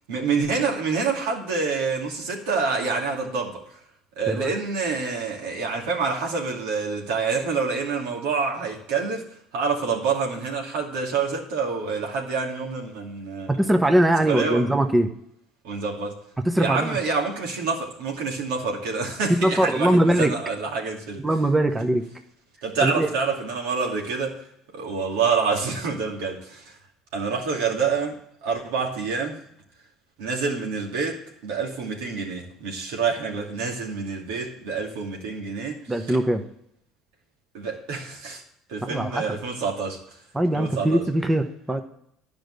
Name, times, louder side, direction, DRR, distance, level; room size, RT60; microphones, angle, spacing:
voice 1, 0.1-3.6 4.2-9.3 9.5-13.6 14.3-14.7 15.6-16.2 16.6-21.3 22.6-24.4 24.7-26.6 27.1-29.4 30.2-35.8 36.1-36.2 37.5-38.4 38.7-40.0 40.5-41.0, right 5 dB, 85° right, 0 dB, 2.5 m, -27 dB
voice 2, 13.5-15.1 16.4-17.0 19.3-20.3 21.2-22.0 22.8-23.1 35.9-36.4 38.8-39.3 40.3-41.8, right 1 dB, 10° right, 6 dB, 1.0 m, -21 dB
11.0 x 5.2 x 8.1 m, 0.73 s
supercardioid pair, 90°, 0 cm